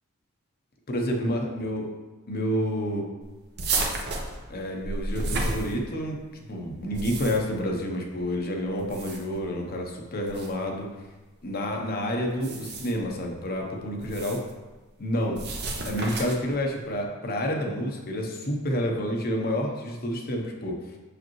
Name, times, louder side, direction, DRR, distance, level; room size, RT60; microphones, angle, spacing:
voice 1, 0.9-1.9 2.3-3.1 4.5-6.2 6.5-10.9 11.4-14.4 15.0-15.4 15.8-20.7, equal, 45° left, 1 dB, 0.9 m, -29 dB
sound 1, 3.6-6.2 6.8-7.6 8.8-9.4 10.3-10.5 12.3-13.1 14.0-14.5 15.3-16.5, right 2 dB, 50° right, 0.8 m, -32 dB
6.6 x 4.9 x 3.1 m, 1.2 s
head